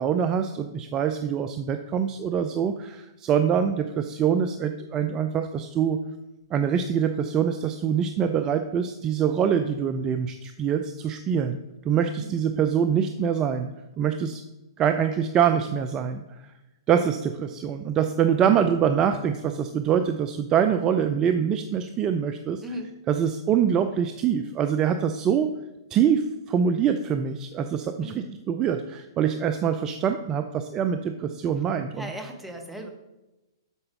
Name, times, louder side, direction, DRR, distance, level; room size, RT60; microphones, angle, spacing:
voice 1, 0.0-6.0 6.5-11.6 11.8-13.7 14.0-14.4 14.8-16.2 16.9-22.6 23.1-25.6 25.9-28.1 28.5-32.1, right 8 dB, 25° right, 8 dB, 0.4 m, -24 dB
voice 2, 22.6-23.0 28.0-28.3 31.9-32.9, right 1 dB, 5° right, 3 dB, 1.1 m, -37 dB
8.1 x 6.7 x 3.7 m, 1.0 s
hypercardioid pair, 115°, 2 cm